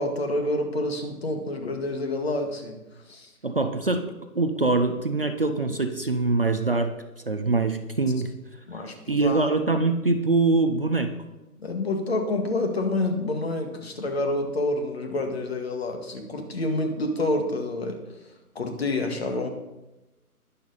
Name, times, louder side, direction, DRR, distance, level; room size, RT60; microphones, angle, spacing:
voice 1, 0.0-2.8 3.1-3.3 8.7-9.5 11.6-18.0 18.6-19.5, left 2 dB, 40° left, 5 dB, 1.9 m, -28 dB
voice 2, 3.4-6.9 7.3-8.3 9.1-11.1, right 3 dB, 40° right, 7 dB, 0.6 m, -24 dB
21.0 x 7.0 x 4.1 m, 1.0 s
hypercardioid pair, 175°, 46 cm